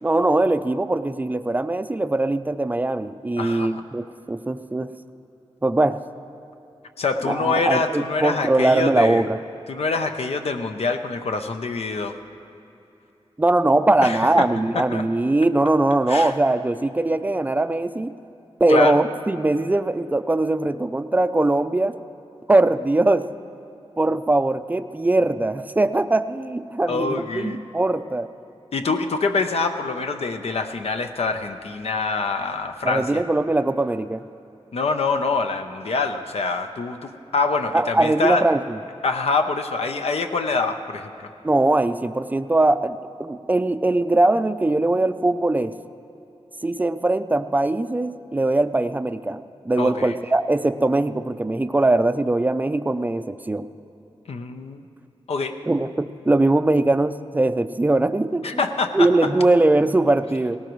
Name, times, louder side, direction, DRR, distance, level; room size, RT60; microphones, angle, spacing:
voice 1, 0.0-4.9 5.6-6.0 7.2-9.4 13.4-18.1 18.6-21.9 22.5-23.3 24.0-28.3 32.8-34.2 37.7-38.8 41.4-45.7 46.6-53.7 55.7-58.6 58.9-60.6, right 2 dB, 15° right, 11 dB, 0.4 m, -21 dB
voice 2, 3.4-3.8 7.0-9.2 9.7-12.1 14.0-14.5 14.7-15.0 16.1-16.3 18.7-19.0 26.9-27.6 28.7-33.2 34.7-38.4 39.0-41.3 49.8-50.2 54.3-54.8 55.3-55.5 58.4-59.3, left 3 dB, 75° left, 6 dB, 0.7 m, -25 dB
18.5 x 18.0 x 3.1 m, 3.0 s
wide cardioid pair, 115°, 10 cm